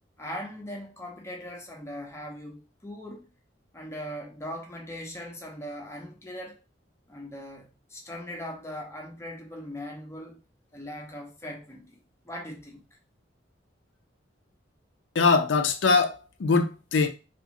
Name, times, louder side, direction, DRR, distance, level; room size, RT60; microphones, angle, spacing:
voice 1, 0.2-3.3 3.7-6.6 7.1-10.4 10.7-12.0 12.2-12.8, equal, 15° left, 0.6 m, -40 dB
voice 2, 15.1-17.1, left 4 dB, 90° left, 0.5 m, -22 dB
2.4 x 2.4 x 2.9 m
head